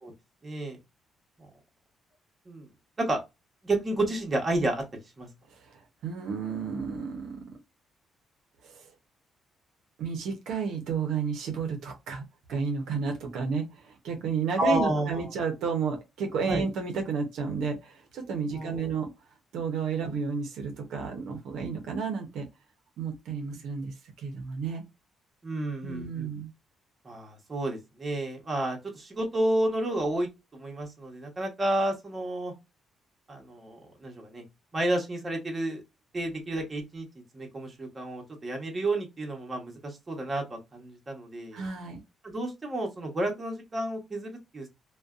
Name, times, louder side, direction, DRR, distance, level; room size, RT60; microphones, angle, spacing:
voice 1, 0.4-0.8 2.5-2.7 3.0-3.2 3.6-4.8 5.2-5.3 14.6-15.2 16.5-16.6 18.5-18.8 23.5-23.6 25.4-26.3 27.0-32.5 33.3-34.4 34.7-35.8 36.1-37.1 37.3-41.6 42.2-44.7, right 1 dB, 30° right, 0.9 m, -31 dB
voice 2, 5.5-7.4 8.6-8.9 10.0-12.2 12.5-19.1 19.5-22.4 23.0-24.8 25.8-26.5 41.5-42.0, right 5 dB, 80° right, 0.6 m, -32 dB
2.5 x 2.1 x 2.3 m
cardioid pair, 90°, 0 cm